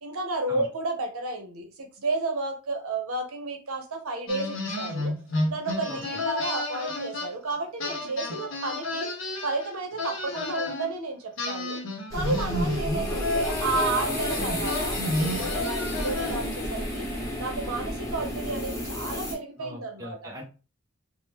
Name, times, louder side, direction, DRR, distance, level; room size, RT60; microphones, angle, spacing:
voice 1, 0.0-5.1 5.5-9.1 9.4-11.8 12.1-17.1 17.4-20.3, right 3 dB, 80° right, 3 dB, 0.8 m, -32 dB
sound 1, 4.3-7.5 7.8-10.9 11.4-16.6, left 2 dB, 60° left, 0.7 m, -31 dB
voice 2, 5.9-6.2 12.3-12.9 14.0-14.2 19.6-20.4, equal, 15° right, 1 dB, 0.4 m, -41 dB
sound 2, 12.1-19.3, left 1 dB, 15° left, 0.8 m, -31 dB
3.4 x 2.1 x 2.9 m, 0.34 s
head